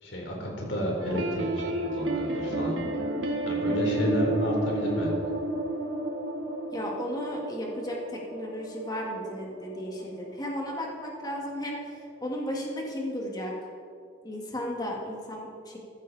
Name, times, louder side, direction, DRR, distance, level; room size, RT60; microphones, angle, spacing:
voice 1, 0.0-2.7 3.5-5.1, equal, 80° left, -1 dB, 4.2 m, -31 dB
sound 1, 1.0-10.9 11.2-11.4 11.7-11.8 12.2-12.3, right 1 dB, 85° right, 1.7 m, -31 dB
voice 2, 6.7-13.5 14.2-15.8, equal, 20° left, -2 dB, 2.4 m, -34 dB
15.0 x 13.0 x 4.3 m, 2.3 s
head